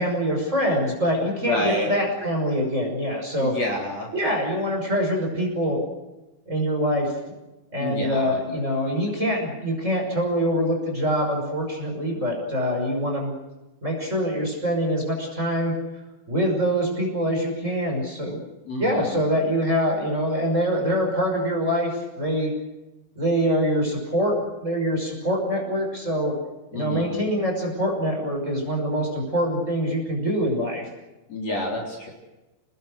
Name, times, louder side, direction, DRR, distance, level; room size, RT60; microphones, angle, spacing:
voice 1, 0.0-3.5 4.1-5.8 6.5-7.1 7.7-13.3 13.8-15.8 16.3-18.4 18.8-22.5 23.2-24.4 24.6-26.3 26.7-30.9, equal, 15° right, 0 dB, 6.1 m, -24 dB
voice 2, 1.4-1.9 3.3-4.1 7.8-8.4 18.6-19.2 26.7-27.2 31.3-32.1, left 1 dB, 40° left, 0 dB, 4.7 m, -29 dB
30.0 x 20.5 x 6.6 m, 1.0 s
omnidirectional pair, 4.5 m